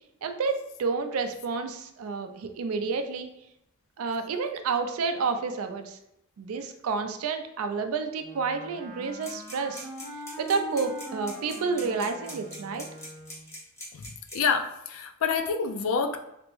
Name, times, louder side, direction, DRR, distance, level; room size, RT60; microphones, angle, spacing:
voice 1, 0.2-3.3 4.0-6.0 6.4-9.9 10.4-12.9, right 4 dB, 85° right, 7 dB, 0.4 m, -30 dB
Wind instrument woodwind instrument, 8.2-13.6, right 2 dB, 30° left, 1.3 m, -42 dB
sound 1, 9.2-14.5, left 1 dB, 15° left, 0.7 m, -42 dB
voice 2, 14.3-16.2, left 5 dB, 70° left, 6 dB, 0.3 m, -27 dB
3.3 x 2.0 x 3.0 m, 0.82 s
head